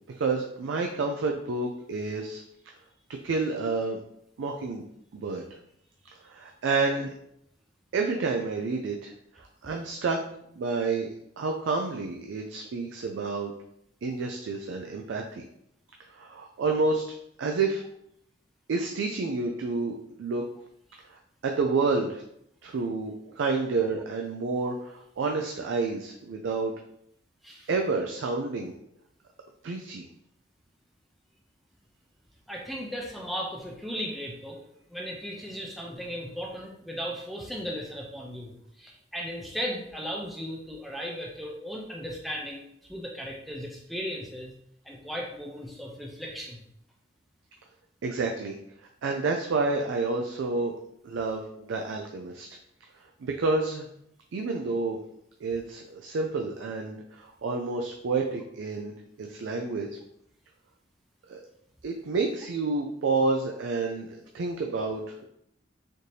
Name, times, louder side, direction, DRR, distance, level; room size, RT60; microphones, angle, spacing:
voice 1, 0.2-2.4 3.2-4.0 4.4-4.9 5.1-5.4 6.2-7.1 7.9-10.2 10.6-11.1 11.4-13.5 14.0-15.5 16.1-17.0 17.4-17.8 18.7-20.4 21.1-22.2 22.6-26.7 27.7-28.7 29.6-30.1 48.0-48.6 49.0-50.7 51.0-52.5 53.2-53.9 54.3-55.0 55.4-60.0 61.3-61.4 61.8-65.3, right 3 dB, 75° right, 2 dB, 0.4 m, -29 dB
voice 2, 32.5-34.6 34.9-44.5 44.8-46.6, equal, ahead, -1 dB, 0.4 m, -36 dB
4.2 x 2.7 x 3.2 m, 0.74 s
head